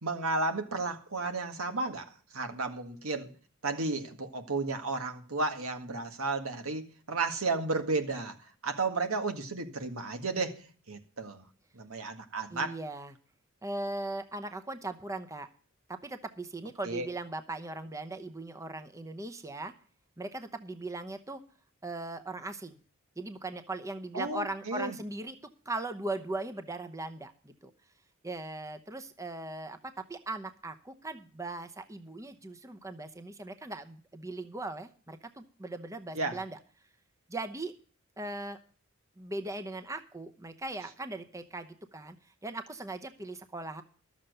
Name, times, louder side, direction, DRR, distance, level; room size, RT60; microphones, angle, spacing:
voice 1, 0.0-3.3 3.6-8.4 8.6-11.4 11.7-12.7 16.9-17.1 24.1-25.0 36.1-36.4, right 3 dB, 85° right, 7 dB, 1.8 m, -33 dB
voice 2, 12.5-13.1 13.6-15.5 15.9-19.7 20.2-21.4 21.8-22.8 23.2-27.7 28.2-36.6 37.3-37.7 38.2-38.6 39.2-42.2 42.4-43.8, right 2 dB, 15° right, 7 dB, 0.8 m, -39 dB
12.5 x 7.3 x 6.6 m, 0.41 s
head